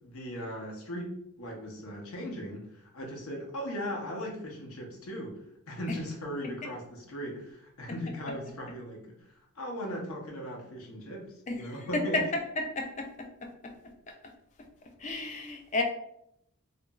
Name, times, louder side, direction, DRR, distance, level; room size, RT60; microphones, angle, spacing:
voice 1, 0.0-5.4 5.7-12.2, equal, 75° left, 0 dB, 0.7 m, -38 dB
voice 2, 11.9-12.2 12.6-13.7 14.1-14.2 15.0-15.8, left 2 dB, 30° left, 3 dB, 0.3 m, -32 dB
2.9 x 2.4 x 2.2 m, 0.75 s
head